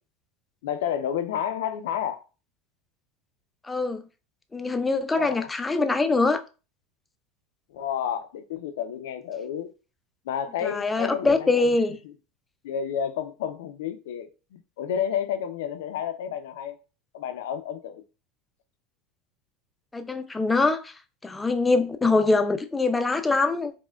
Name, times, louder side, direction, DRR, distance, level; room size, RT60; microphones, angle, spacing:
voice 1, 0.6-2.2 5.1-5.5 7.7-9.7 10.3-11.8 12.6-16.8 17.1-18.0, left 9 dB, 85° left, 0.4 m, -31 dB
voice 2, 3.6-4.0 4.5-6.4 10.6-12.0 19.9-20.9 21.2-23.7, left 3 dB, 10° left, 0.3 m, -23 dB
4.2 x 2.1 x 2.2 m
supercardioid pair, 130°, 0 cm